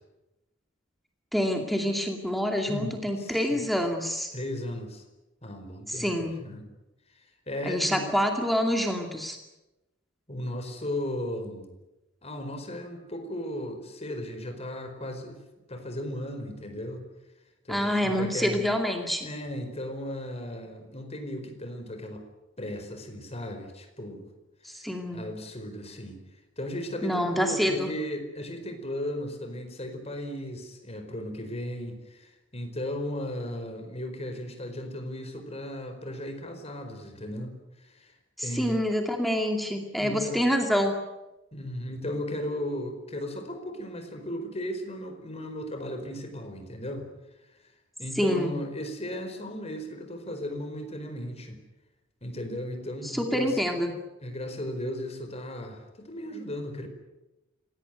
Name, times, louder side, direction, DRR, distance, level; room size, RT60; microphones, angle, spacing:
voice 1, 1.3-4.3 5.9-6.3 7.7-9.4 17.7-19.3 24.6-25.2 27.0-27.9 38.4-41.0 48.2-48.5 53.0-53.9, equal, ahead, 3 dB, 2.4 m, -27 dB
voice 2, 2.6-3.6 4.3-5.0 5.4-6.1 6.4-6.7 7.5-8.0 10.3-11.7 12.2-15.4 15.7-17.0 17.6-18.6 19.2-22.2 22.6-24.3 24.7-26.2 26.6-38.1 38.4-38.8 40.0-40.4 41.5-47.1 48.0-51.6 52.2-53.6 54.2-56.9, left 1 dB, 30° left, 6 dB, 4.7 m, -36 dB
26.0 x 18.5 x 9.3 m, 1.0 s
head